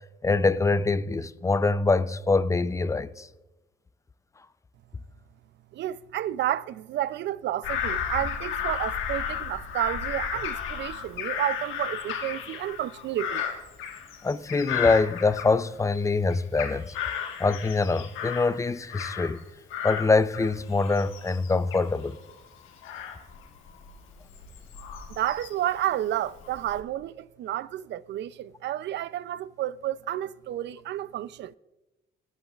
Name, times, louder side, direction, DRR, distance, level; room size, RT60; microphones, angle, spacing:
voice 1, 0.2-3.3 14.2-17.0 17.4-19.4 19.8-22.2, left 3 dB, 15° left, 0.4 m, -24 dB
voice 2, 5.7-13.4 25.1-31.5, right 12 dB, 65° right, 0.4 m, -31 dB
Bird vocalization bird call bird song / Crow, 7.6-16.0 16.3-19.4 19.7-25.7 26.2-26.8, left 8 dB, 90° left, 1.4 m, -34 dB
17.0 x 8.3 x 2.4 m
cardioid pair, 90°, 20 cm